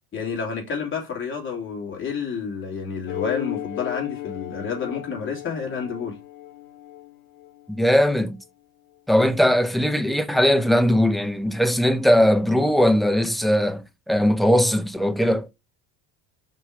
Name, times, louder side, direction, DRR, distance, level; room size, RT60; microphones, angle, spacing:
voice 1, 0.1-6.2, left 5 dB, 30° left, 3.1 m, -30 dB
sound 1, 3.1-8.0, left 16 dB, 55° left, 1.0 m, -35 dB
voice 2, 7.7-8.4 9.1-15.5, equal, ahead, 0.5 m, -19 dB
6.1 x 4.5 x 4.9 m
cardioid pair, 130°, 40 cm